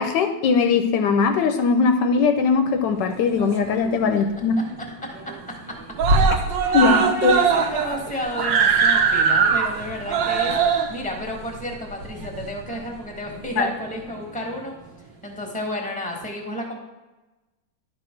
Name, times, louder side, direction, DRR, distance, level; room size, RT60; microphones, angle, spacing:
voice 1, 0.0-4.7 6.7-7.3 13.6-13.7, left 5 dB, 75° left, 7 dB, 1.2 m, -20 dB
Screaming, 3.1-4.0 4.3-4.4 4.8-4.9 5.2-5.6 6.0-12.8 13.6-13.7, right 5 dB, 75° right, 1.5 m, -21 dB
voice 2, 6.5-14.7 15.2-16.8, left 1 dB, 5° left, 2 dB, 1.3 m, -32 dB
11.0 x 3.8 x 5.8 m, 1.1 s
omnidirectional pair, 2.0 m